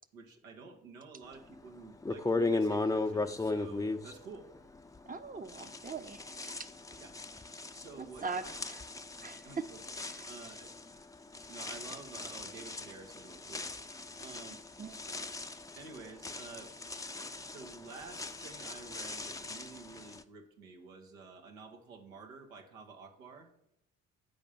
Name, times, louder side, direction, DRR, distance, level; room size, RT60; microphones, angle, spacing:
voice 1, 0.1-4.5 5.3-5.8 7.0-7.2 7.7-8.6 9.4-9.8 10.3-10.7 11.5-13.7 14.2-14.6 15.8-16.7 17.4-23.5, right 4 dB, 80° right, 3 dB, 1.3 m, -50 dB
sound 1, 1.5-1.6 2.0-5.2 5.5-20.2, left 2 dB, 10° left, 0.6 m, -38 dB
voice 2, 5.1-6.7 8.0-8.8 9.2-9.7 10.1-10.3 14.8-15.2, right 4 dB, 20° right, 12 dB, 0.8 m, -41 dB
8.5 x 5.2 x 7.0 m, 0.76 s
figure-of-eight pair, 45°, 39 cm